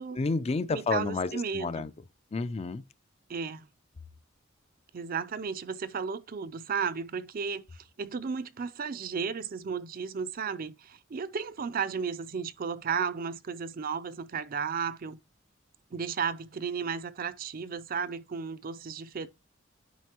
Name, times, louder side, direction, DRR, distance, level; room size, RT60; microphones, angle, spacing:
voice 1, 0.2-1.9 2.3-2.8, left 3 dB, 30° left, 0.4 m, -30 dB
voice 2, 0.7-1.9 3.3-3.7 4.9-15.2 15.9-19.3, right 6 dB, 50° right, 0.5 m, -34 dB
9.3 x 5.3 x 2.9 m
head